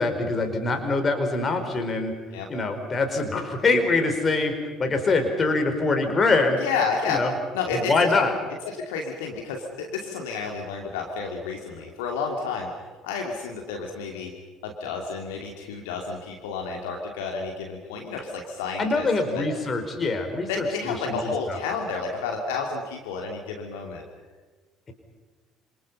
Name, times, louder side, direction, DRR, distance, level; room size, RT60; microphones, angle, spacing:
voice 1, 0.0-2.2 2.5-6.6 7.1-7.3 7.7-8.3 18.8-21.6, left 3 dB, 30° left, 5 dB, 4.7 m, -24 dB
voice 2, 6.6-7.2 7.5-8.2 8.6-12.7 13.0-14.3 14.6-19.4 20.5-24.0, left 5 dB, 65° left, 1 dB, 2.7 m, -31 dB
27.5 x 27.5 x 5.6 m, 1.3 s
figure-of-eight pair, 55°, 0 cm